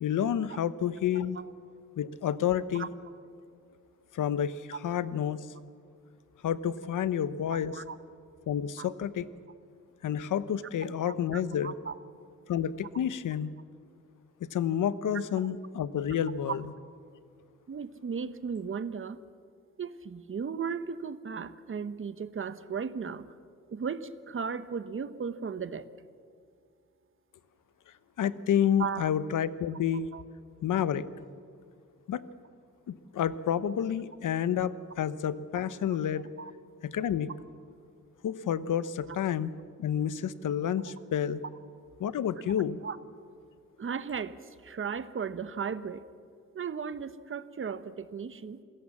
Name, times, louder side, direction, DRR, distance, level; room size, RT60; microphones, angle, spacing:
voice 1, 0.0-1.4 2.0-2.9 4.1-5.5 6.4-7.8 8.5-9.3 10.0-11.7 12.5-13.5 14.5-16.6 28.2-30.1 30.6-31.0 32.1-32.2 32.9-36.3 36.8-37.3 38.2-39.5 39.8-41.4 42.0-42.8, left 9 dB, 85° left, 15 dB, 0.9 m, -29 dB
voice 2, 7.5-8.0 8.8-8.9 11.0-11.9 16.5-16.6 17.7-19.2 19.8-23.3 23.7-25.9 28.8-29.1 30.1-30.2 36.4-36.5 42.8-43.0 43.8-46.0 46.5-48.6, right 6 dB, 40° right, 13 dB, 1.0 m, -36 dB
27.5 x 17.0 x 7.3 m, 2.2 s
cardioid pair, 105°, 31 cm